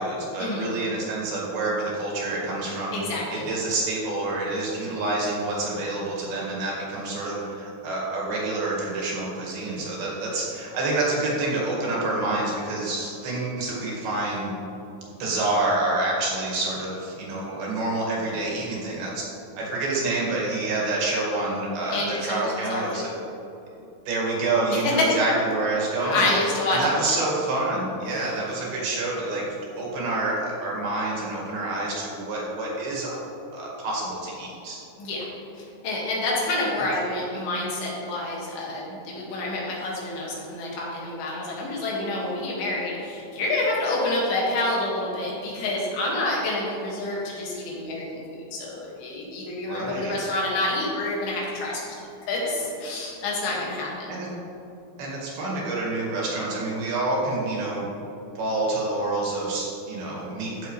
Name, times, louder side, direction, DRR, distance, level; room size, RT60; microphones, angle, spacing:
voice 1, 0.0-3.0 3.3-14.5 15.2-19.2 19.5-23.1 24.1-26.3 26.7-29.4 29.8-33.1 33.5-34.8 49.6-50.2 54.1-54.3 55.0-57.9 58.4-60.7, right 2 dB, 70° right, -4 dB, 3.8 m, -27 dB
voice 2, 2.9-3.5 21.9-23.1 24.7-25.2 26.0-26.9 35.0-35.3 35.5-51.9 52.3-54.1, left 2 dB, 70° left, -4 dB, 3.8 m, -28 dB
14.5 x 7.5 x 3.2 m, 2.9 s
omnidirectional pair, 4.6 m